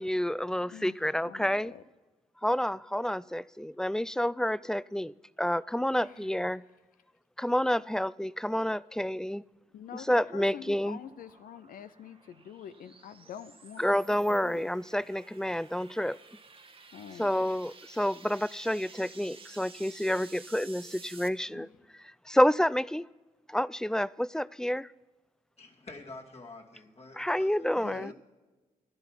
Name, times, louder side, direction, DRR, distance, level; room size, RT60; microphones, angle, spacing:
voice 1, 0.0-1.7 2.4-5.1 5.4-6.6 7.4-9.4 9.9-11.0 13.8-16.2 17.2-21.7 22.3-23.1 23.5-24.9 27.2-28.1, equal, 5° left, 0.3 m, -29 dB
voice 2, 0.7-1.8 5.9-6.3 9.7-13.8 14.1-14.7 16.9-17.5 21.5-21.7 27.7-28.1, left 8 dB, 80° left, 0.6 m, -46 dB
sound 1, 9.6-21.3, right 4 dB, 40° right, 1.2 m, -53 dB
voice 3, 25.6-28.1, left 2 dB, 45° left, 2.4 m, -48 dB
12.0 x 10.5 x 5.8 m
supercardioid pair, 50°, 14 cm